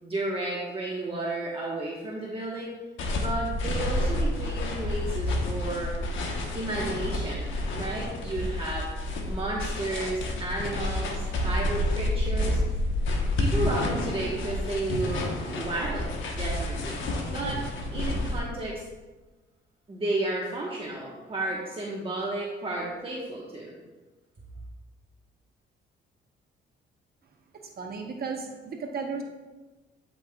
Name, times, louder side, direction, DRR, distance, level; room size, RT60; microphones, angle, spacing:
voice 1, 0.0-2.7 3.1-5.9 6.5-8.9 9.3-12.6 13.4-17.0 17.3-17.6 17.9-18.8 19.9-23.8, right 2 dB, 30° right, -4 dB, 1.2 m, -32 dB
sound 1, 3.0-18.4, left 1 dB, 75° left, 1.1 m, -29 dB
voice 2, 27.8-29.2, right 5 dB, 50° right, 3 dB, 0.9 m, -34 dB
10.5 x 5.5 x 2.3 m, 1.2 s
cardioid pair, 90°, 20 cm